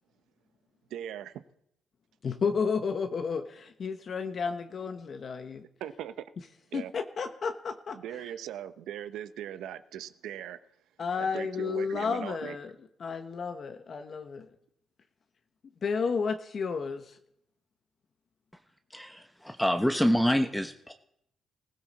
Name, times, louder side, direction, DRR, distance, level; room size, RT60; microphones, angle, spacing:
voice 1, 0.9-1.4 5.8-6.1 6.7-6.9 7.9-10.6 11.2-12.6, right 10 dB, 85° right, 12 dB, 0.9 m, -39 dB
voice 2, 2.2-5.6 6.7-8.0 11.0-12.7 13.0-14.5 15.8-17.2, left 5 dB, 50° left, 7 dB, 1.0 m, -32 dB
voice 3, 18.9-20.9, equal, 5° left, 6 dB, 1.0 m, -26 dB
20.5 x 16.0 x 4.2 m, 0.77 s
cardioid pair, 90°, 0 cm